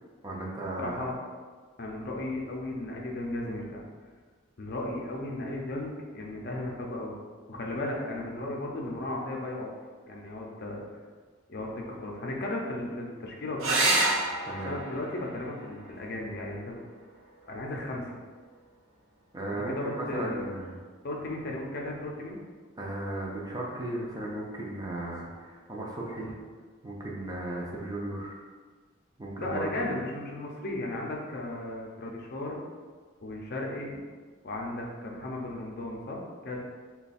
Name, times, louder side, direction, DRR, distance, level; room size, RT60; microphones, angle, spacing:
voice 1, 0.2-1.1 14.5-14.8 19.3-20.7 22.8-26.4 26.8-28.4 29.2-29.9, right 1 dB, 20° right, -3 dB, 0.5 m, -35 dB
voice 2, 0.8-1.1 1.8-3.8 4.6-7.2 7.5-9.7 10.1-10.8 11.5-13.9 14.7-16.8 17.5-18.2 19.7-20.5 21.0-22.4 29.4-32.6 33.2-34.0 34.4-36.6, left 1 dB, 50° left, -1 dB, 0.5 m, -35 dB
sound 1, 13.6-18.6 20.5-21.1 24.6-24.7 25.0-25.1, right 2 dB, 85° right, 0.7 m, -31 dB
3.2 x 2.3 x 4.0 m, 1.5 s
head